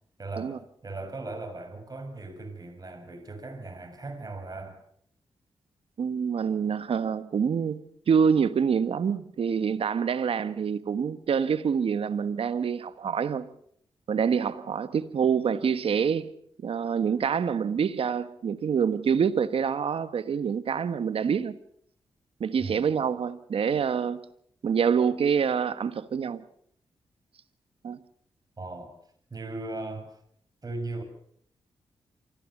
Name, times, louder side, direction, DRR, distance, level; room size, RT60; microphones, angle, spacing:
voice 1, 0.2-4.8 22.6-22.9 28.6-29.0 29.3-30.2 30.6-31.0, right 2 dB, 40° right, 6.1 m, -38 dB
voice 2, 6.0-13.5 14.1-16.3 16.6-21.6 22.4-24.2 24.6-26.4 27.8-28.0, right 7 dB, 65° right, 1.4 m, -26 dB
24.5 x 15.0 x 7.3 m
supercardioid pair, 50°, 10 cm